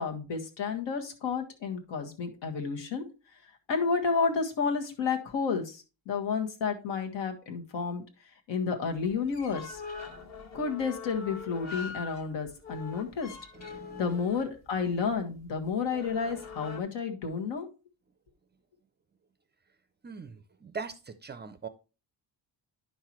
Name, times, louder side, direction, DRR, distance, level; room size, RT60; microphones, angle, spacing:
voice 1, 0.0-3.0 3.7-8.0 8.5-9.8 10.5-13.3 14.0-17.7, left 5 dB, 75° left, 3 dB, 1.7 m, -31 dB
sound 1, 8.9-16.8, left 5 dB, 40° left, 1.2 m, -44 dB
voice 2, 13.5-14.2 14.8-15.0 20.0-21.7, right 5 dB, 25° right, 11 dB, 0.4 m, -42 dB
10.0 x 5.7 x 3.0 m, 0.31 s
cardioid pair, 165°, 44 cm